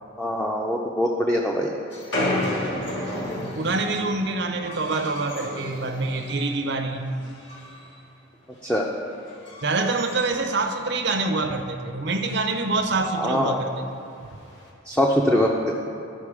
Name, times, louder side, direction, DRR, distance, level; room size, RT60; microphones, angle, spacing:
voice 1, 0.2-1.7 8.6-8.9 13.2-13.6 14.9-15.5, equal, 5° left, -2 dB, 0.5 m, -22 dB
sound 1, 1.9-6.7 7.0-8.0 8.3-8.6 9.1-11.0 11.4-11.5 11.7-11.8 12.1-12.5 13.4-13.5 14.3-14.7, left 1 dB, 60° left, 1.6 m, -33 dB
voice 2, 3.4-7.0 9.6-13.7, right 3 dB, 55° right, 5 dB, 0.6 m, -26 dB
12.5 x 5.5 x 4.8 m, 2.7 s
head